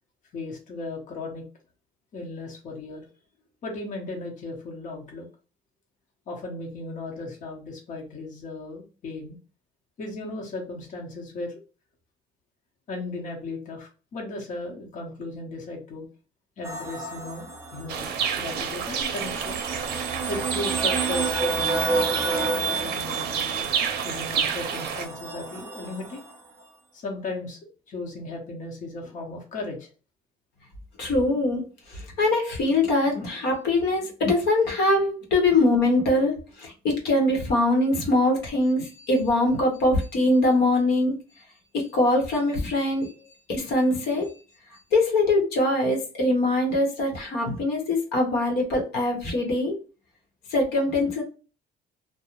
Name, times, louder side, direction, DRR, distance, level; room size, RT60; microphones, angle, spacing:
voice 1, 0.3-1.4 2.1-3.0 3.6-5.3 6.3-9.4 10.0-11.5 12.9-16.1 16.6-19.6 20.3-23.7 24.0-26.2 26.9-27.6 27.9-29.9, left 2 dB, 50° left, 0 dB, 0.8 m, -36 dB
sound 1, 16.6-26.4, right 4 dB, 15° right, 0.6 m, -30 dB
sound 2, 17.9-25.1, right 7 dB, 75° right, 0.5 m, -29 dB
voice 2, 31.0-41.1 41.7-43.1 43.5-44.3 44.9-49.8 50.5-51.2, left 2 dB, 75° left, 0 dB, 0.9 m, -23 dB
2.4 x 2.1 x 2.9 m, 0.35 s
cardioid pair, 110°, 17 cm